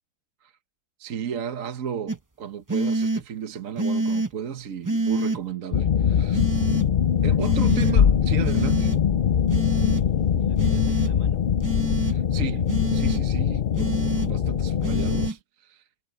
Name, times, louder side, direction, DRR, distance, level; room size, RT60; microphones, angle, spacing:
voice 1, 1.0-6.5 7.2-8.9 12.0-15.9, right 8 dB, 55° right, 1.3 m, -34 dB
sound 1, 2.1-2.2 2.7-3.2 3.8-4.3 4.8-5.4 6.3-6.8 7.4-7.9 8.4-9.0 9.5-10.0 10.6-11.1 11.6-12.1 12.7-13.2 13.8-14.3 14.8-15.3, right 2 dB, 20° right, 0.6 m, -27 dB
sound 2, 5.7-15.3, left 8 dB, 80° left, 0.4 m, -22 dB
voice 2, 7.4-7.9 10.1-11.4 12.0-12.3, right 1 dB, 70° right, 8.3 m, -50 dB
omnidirectional pair, 1.8 m